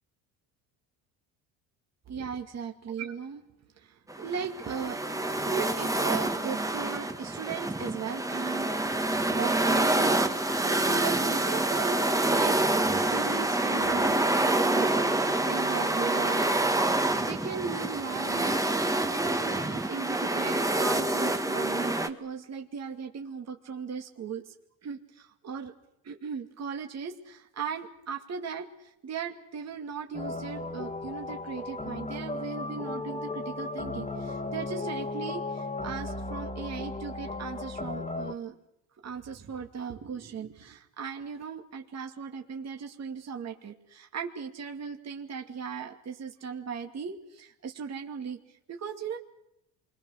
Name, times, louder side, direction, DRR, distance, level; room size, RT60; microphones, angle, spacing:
voice 1, 2.1-3.4 3.8-5.0 5.3-16.8 17.2-18.6 19.0-24.5 24.8-25.7 26.0-38.6 39.0-49.2, right 6 dB, 40° right, 3 dB, 2.5 m, -38 dB
sound 1, 4.1-22.1, right 2 dB, 10° right, 1.8 m, -27 dB
sound 2, 30.1-38.3, left 2 dB, 15° left, 2.2 m, -35 dB
28.5 x 23.0 x 6.5 m, 0.82 s
supercardioid pair, 90°, 39 cm